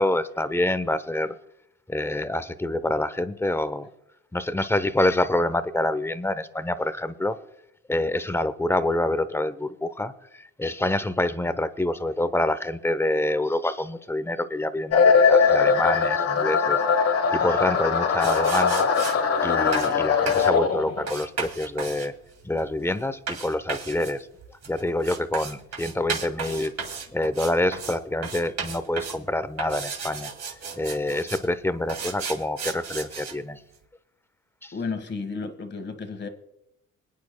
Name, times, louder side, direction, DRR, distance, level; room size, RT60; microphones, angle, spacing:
voice 1, 0.0-1.3 1.9-3.9 4.3-7.4 7.9-16.8 17.3-18.9 19.4-22.1 22.4-24.3 24.7-26.7 27.1-30.3 30.8-33.6 34.6-34.7, left 1 dB, 10° left, 13 dB, 0.7 m, -26 dB
sound 1, 14.9-21.1, left 5 dB, 55° left, 1.2 m, -21 dB
sound 2, 18.2-19.2 19.7-19.9 20.3-20.5 21.1-28.0 28.2-29.2 29.6-31.5 31.9-33.3, right 5 dB, 60° right, 2.4 m, -34 dB
voice 2, 34.7-36.3, left 4 dB, 35° left, 8 dB, 1.6 m, -32 dB
26.0 x 9.4 x 2.2 m, 0.81 s
cardioid pair, 90°, 30 cm